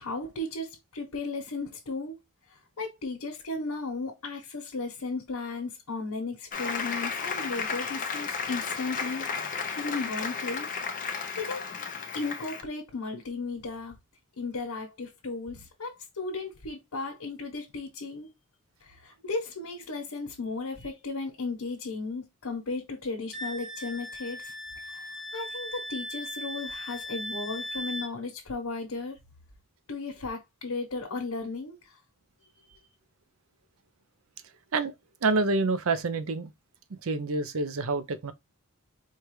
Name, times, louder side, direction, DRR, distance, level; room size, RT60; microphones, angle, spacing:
voice 1, 0.0-2.2 2.5-9.3 9.7-10.7 11.4-11.7 12.1-14.0 14.4-18.3 18.8-24.5 24.8-29.2 29.9-32.0 32.7-32.8, left 3 dB, 85° left, 1.1 m, -35 dB
Applause, 6.5-12.6, left 5 dB, 35° left, 0.6 m, -33 dB
Wind instrument woodwind instrument, 23.3-28.1, left 1 dB, ahead, 0.6 m, -38 dB
voice 2, 35.2-36.5 37.0-38.3, right 3 dB, 65° right, 0.5 m, -27 dB
4.5 x 2.4 x 3.1 m
head